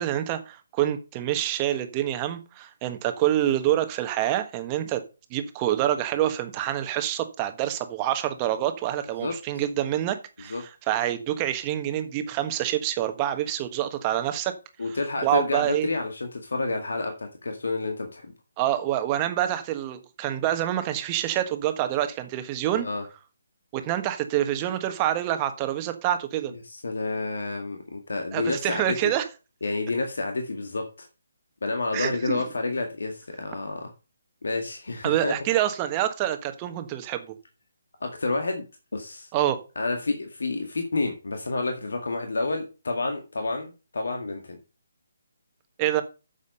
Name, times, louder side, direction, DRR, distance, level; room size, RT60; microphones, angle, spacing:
voice 1, 0.0-5.0 5.3-14.5 15.2-15.9 18.6-22.9 23.7-26.5 28.3-29.2 31.9-32.4 35.0-37.3 39.3-39.6 45.8-46.0, right 12 dB, 25° right, 1.4 m, -26 dB
voice 2, 14.8-18.3 22.7-23.0 26.5-29.1 29.6-31.1 31.6-33.9 34.4-35.3 38.0-38.6 38.9-39.3 39.8-44.6, left 3 dB, 65° left, 2.0 m, -29 dB
9.7 x 7.2 x 5.4 m
figure-of-eight pair, 145°, 0 cm